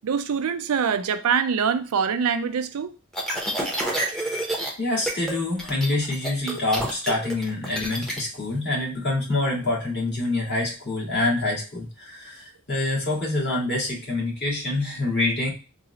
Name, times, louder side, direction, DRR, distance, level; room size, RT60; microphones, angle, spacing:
voice 1, 0.0-2.9 4.7-4.8, right 6 dB, 90° right, 0.4 m, -24 dB
sound 1, 3.1-4.7 5.0-5.3 5.6-8.2, right 1 dB, ahead, 0.6 m, -28 dB
voice 2, 4.8-15.5, left 2 dB, 50° left, 1.6 m, -26 dB
3.9 x 2.0 x 3.8 m
head